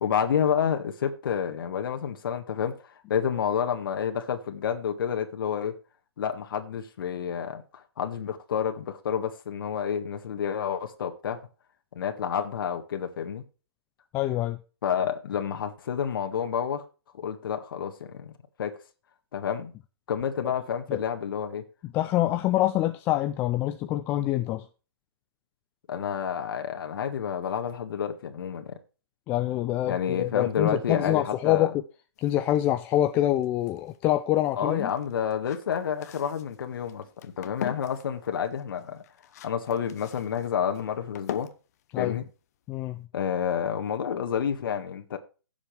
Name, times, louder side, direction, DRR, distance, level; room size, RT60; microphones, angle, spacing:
voice 1, 0.0-5.7 6.2-11.4 11.9-13.4 14.8-16.8 17.2-18.3 18.6-18.8 19.3-19.7 20.1-21.6 25.9-28.7 29.9-31.7 34.6-39.0 39.4-41.5 42.0-42.2 43.1-45.2, left 8 dB, 55° left, 1.7 m, -29 dB
voice 2, 14.1-14.6 20.9-21.0 21.9-24.6 29.3-31.7 32.2-34.9 41.9-42.2 42.7-43.0, left 14 dB, 15° left, 0.4 m, -25 dB
sound 1, 32.2-43.0, left 10 dB, 40° left, 0.9 m, -44 dB
16.0 x 7.3 x 3.3 m
hypercardioid pair, 155°, 14 cm